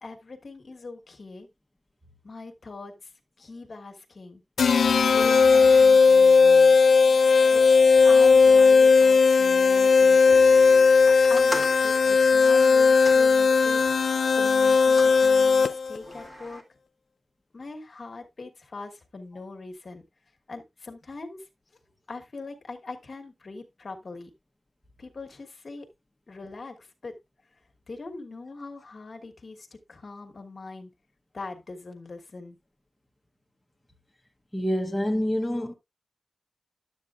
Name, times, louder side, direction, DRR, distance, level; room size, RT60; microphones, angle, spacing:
voice 1, 0.0-1.5 2.2-3.1 3.4-4.4 5.1-6.8 7.5-7.6 8.0-10.4 11.1-14.0 14.3-16.6 17.5-20.0 20.5-21.4 22.1-24.3 25.0-25.9 26.3-27.2 27.9-30.9 31.3-32.6, left 3 dB, 45° left, 1.3 m, -41 dB
sound 1, 4.6-16.0, left 5 dB, 90° left, 0.6 m, -17 dB
sound 2, 11.2-14.0 14.6-15.2 16.0-16.6, equal, 25° right, 1.7 m, -39 dB
voice 2, 34.5-35.7, equal, 5° left, 1.0 m, -26 dB
11.5 x 8.0 x 2.5 m
wide cardioid pair, 150°, 0 cm